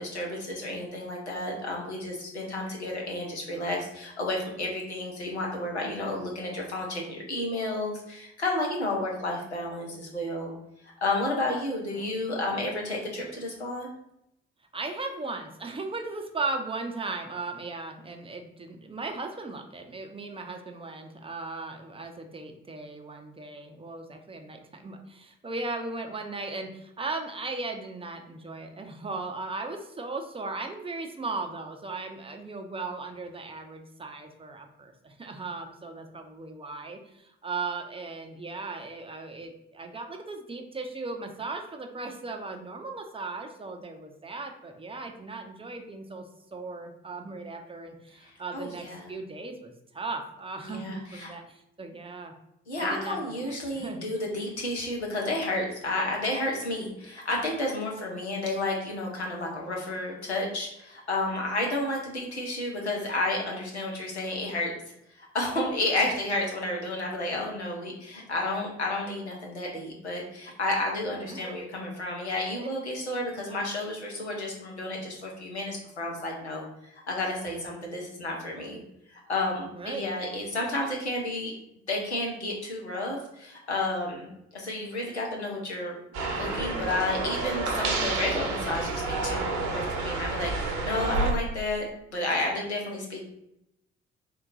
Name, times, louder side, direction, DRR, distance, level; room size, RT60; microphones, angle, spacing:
voice 1, 0.0-10.5 10.8-13.9 48.2-49.1 50.7-51.3 52.7-64.7 65.2-78.8 79.1-81.5 81.9-84.3 84.5-85.9 86.3-91.8 92.1-93.2, left 2 dB, 90° left, -1 dB, 0.6 m, -31 dB
voice 2, 11.9-12.2 14.7-52.3 52.8-54.3 71.2-71.7 72.5-72.7 73.5-73.6 79.7-80.0, right 3 dB, 15° right, 3 dB, 0.5 m, -37 dB
sound 1, 86.1-91.3, right 3 dB, 60° right, 0.8 m, -29 dB
3.7 x 2.2 x 3.9 m, 0.82 s
figure-of-eight pair, 40°, 32 cm